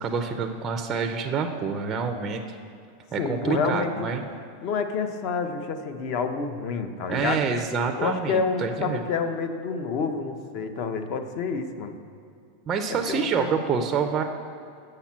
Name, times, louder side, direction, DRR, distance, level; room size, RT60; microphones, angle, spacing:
voice 1, 0.0-2.4 3.1-4.2 7.1-9.0 12.7-14.2, right 5 dB, 20° right, 5 dB, 0.4 m, -27 dB
voice 2, 3.2-4.1 4.6-7.5 8.0-11.9 13.1-13.5, left 5 dB, 40° left, 8 dB, 0.6 m, -28 dB
6.5 x 5.8 x 7.3 m, 2.4 s
supercardioid pair, 165°, 0 cm